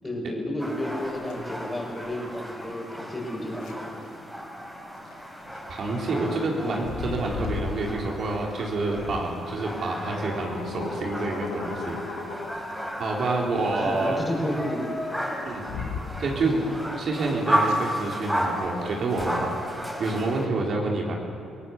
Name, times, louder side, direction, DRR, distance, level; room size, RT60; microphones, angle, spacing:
voice 1, 0.0-3.9 13.8-14.9 16.4-16.6, left 1 dB, 20° left, 1 dB, 6.6 m, -31 dB
sound 1, 0.6-20.5, equal, 5° right, 5.3 m, -34 dB
sound 2, 1.1-19.9, left 5 dB, 85° left, 2.2 m, -39 dB
voice 2, 5.7-12.0 13.0-14.2 15.4-15.7 16.2-16.5 17.0-21.1, right 3 dB, 60° right, -1 dB, 4.0 m, -28 dB
27.5 x 18.0 x 7.2 m, 2.5 s
supercardioid pair, 55°, 0 cm